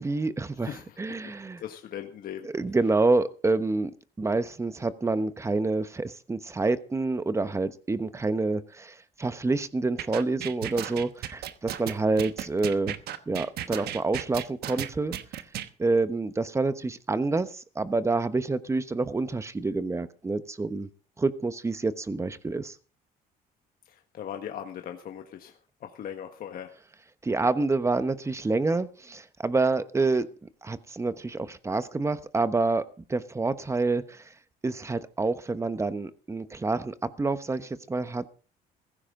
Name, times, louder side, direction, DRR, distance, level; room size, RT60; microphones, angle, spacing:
voice 1, 0.0-0.7 1.0-1.6 2.4-3.9 4.2-13.0 13.3-15.2 15.8-20.9 21.2-22.7 27.2-30.3 30.6-34.3 34.6-38.3, right 3 dB, 15° right, 13 dB, 1.1 m, -27 dB
voice 2, 0.6-1.2 1.6-2.5 23.8-26.7, left 9 dB, 60° left, 5 dB, 1.5 m, -39 dB
sound 1, 10.0-15.7, right 11 dB, 70° right, 1.2 m, -34 dB
15.5 x 15.0 x 3.8 m, 0.37 s
cardioid pair, 110°, 17 cm